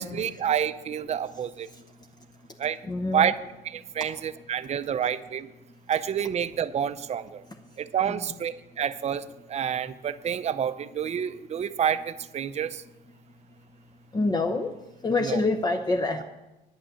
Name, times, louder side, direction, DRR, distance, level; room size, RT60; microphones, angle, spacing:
voice 1, 0.0-1.7 2.6-2.8 3.1-3.3 3.6-5.5 5.9-7.4 7.8-12.8 15.2-15.4, right 9 dB, 40° right, 13 dB, 0.6 m, -28 dB
voice 2, 2.8-3.3 8.1-8.3 14.1-14.7 15.0-16.2, left 3 dB, 25° left, 3 dB, 0.8 m, -26 dB
10.5 x 6.2 x 8.3 m, 1.0 s
cardioid pair, 110°, 17 cm